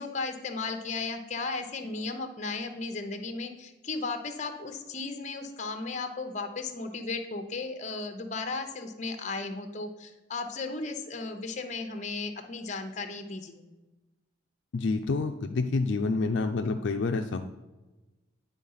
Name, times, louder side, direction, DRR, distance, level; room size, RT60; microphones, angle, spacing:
voice 1, 0.0-13.6, left 3 dB, 35° left, 6 dB, 0.8 m, -35 dB
voice 2, 14.7-17.5, left 3 dB, 65° left, 5 dB, 0.4 m, -28 dB
9.9 x 3.8 x 5.6 m, 1.1 s
head